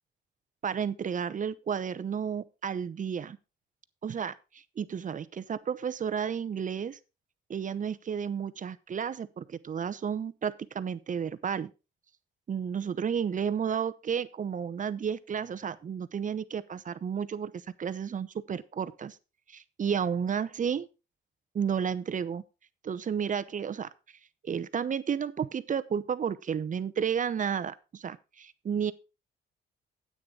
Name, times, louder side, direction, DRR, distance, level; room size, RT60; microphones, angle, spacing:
voice 1, 0.6-3.4 4.0-7.0 7.5-11.7 12.5-19.2 19.5-20.9 21.5-22.4 22.8-23.9 24.4-28.9, right 7 dB, 40° right, 14 dB, 0.8 m, -32 dB
9.7 x 8.7 x 3.8 m, 0.29 s
cardioid pair, 90°, 20 cm